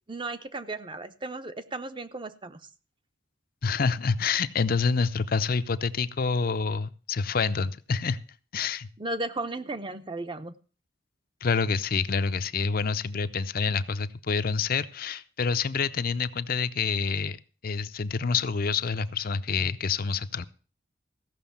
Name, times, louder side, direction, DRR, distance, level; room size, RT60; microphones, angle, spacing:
voice 1, 0.1-2.7 9.0-10.5, right 2 dB, 25° right, 11 dB, 0.8 m, -35 dB
voice 2, 3.6-8.2 8.5-8.9 11.4-17.4 17.6-20.5, left 5 dB, 50° left, 12 dB, 0.6 m, -27 dB
15.0 x 6.2 x 7.1 m, 0.38 s
head